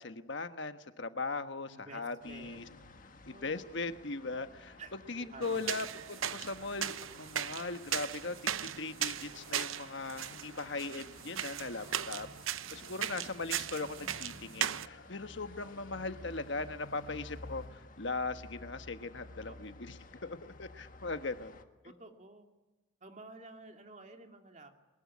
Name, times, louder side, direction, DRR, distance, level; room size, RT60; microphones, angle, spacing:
voice 1, 0.0-2.6 3.3-4.8 5.1-8.4 8.8-12.3 12.7-19.9 20.2-21.6, left 3 dB, 65° left, 9 dB, 1.3 m, -39 dB
voice 2, 1.7-2.7 3.3-3.7 4.8-5.0 5.3-5.9 13.7-14.3 19.4-19.7 21.8-22.5 23.0-24.9, right 2 dB, 35° right, 4 dB, 2.5 m, -52 dB
sound 1, 2.2-21.6, left 2 dB, 40° left, 1.6 m, -54 dB
sound 2, 5.4-14.9, right 10 dB, 85° right, 0.8 m, -38 dB
sound 3, 9.1-17.7, left 3 dB, 80° left, 2.9 m, -58 dB
23.0 x 21.0 x 9.6 m, 1.1 s
head